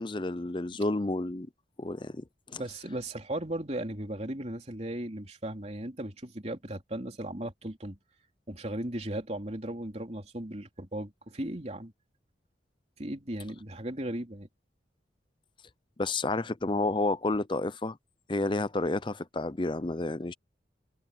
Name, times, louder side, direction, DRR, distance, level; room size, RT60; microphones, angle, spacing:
voice 1, 0.0-1.5 1.8-2.6 16.0-18.0 18.3-20.3, left 2 dB, 25° left, 0.6 m, -30 dB
voice 2, 2.6-8.0 8.5-11.9 13.0-14.5, right 1 dB, 35° right, 3.4 m, -36 dB
head